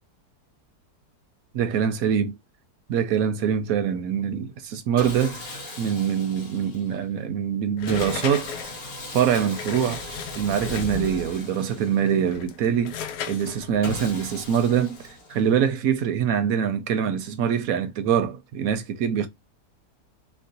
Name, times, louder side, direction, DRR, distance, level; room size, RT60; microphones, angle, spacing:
voice 1, 1.5-2.4 2.9-8.6 9.1-10.0 10.3-19.3, right 8 dB, 70° right, 0.9 m, -24 dB
Sawing, 5.0-7.0 7.9-12.4 13.8-15.6, left 2 dB, 55° left, 2.3 m, -39 dB
sound 1, 7.8-11.4 12.1-15.1, left 7 dB, 80° left, 1.2 m, -36 dB
4.4 x 2.1 x 2.6 m
omnidirectional pair, 1.7 m